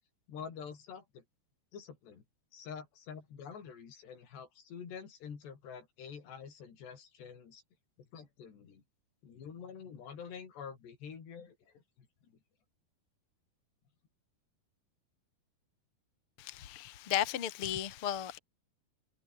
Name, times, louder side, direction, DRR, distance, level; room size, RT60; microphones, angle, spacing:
voice 1, 0.3-1.2 1.7-2.2 2.5-7.6 8.0-8.8 9.2-12.1, left 7 dB, 80° left, 6.4 m, -47 dB
voice 2, 16.4-18.4, left 11 dB, 40° left, 2.5 m, -35 dB
omnidirectional pair, 4.8 m